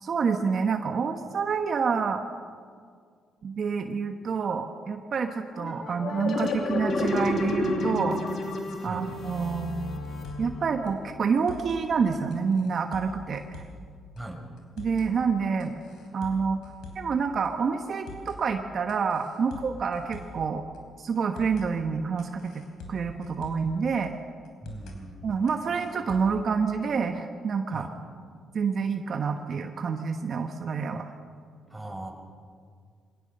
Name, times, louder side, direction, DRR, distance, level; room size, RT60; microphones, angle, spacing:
voice 1, 0.0-2.2 3.4-8.2 8.8-9.7 10.4-13.6 14.8-15.7 16.1-20.6 21.0-22.6 22.9-24.1 25.2-27.9 28.5-31.1, right 5 dB, 50° right, 5 dB, 1.2 m, -28 dB
sound 1, 5.6-10.9, left 2 dB, 60° left, 2.8 m, -30 dB
sound 2, 10.0-10.6 10.9-11.0 11.3-11.8 12.3-13.9 14.2-14.3 14.6-15.1 15.6-17.2 17.4-17.5 17.9-18.4 18.9-20.5 20.7-20.8 21.2-21.7 22.2-23.8 24.0-24.1 24.4-25.0 25.5-26.4, left 3 dB, 80° left, 3.8 m, -44 dB
voice 2, 24.6-25.4 27.7-27.9 31.7-32.1, right 2 dB, 5° right, 1 dB, 5.0 m, -39 dB
23.0 x 18.0 x 6.7 m, 2.1 s
cardioid pair, 90°, 0 cm